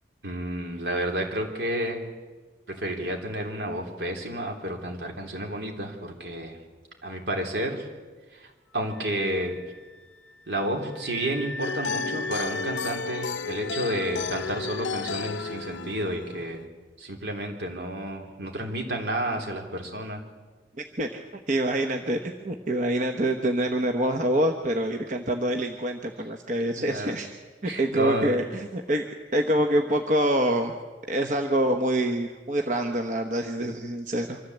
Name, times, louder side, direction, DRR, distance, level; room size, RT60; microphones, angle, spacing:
voice 1, 0.2-2.0 2.7-6.6 7.0-7.9 8.3-9.6 10.5-16.6 17.0-20.2 26.8-27.2 27.6-28.4 33.6-33.7, right 1 dB, 75° right, 2 dB, 3.5 m, -31 dB
Wind instrument woodwind instrument, 8.7-16.2, left 1 dB, 5° left, 1.3 m, -41 dB
sound 1, 11.6-16.6, left 5 dB, 85° left, 0.5 m, -33 dB
voice 2, 21.5-27.3 27.6-29.0 29.3-30.7 31.1-34.4, right 1 dB, 45° right, 4 dB, 1.1 m, -26 dB
25.0 x 14.0 x 8.0 m, 1.4 s
head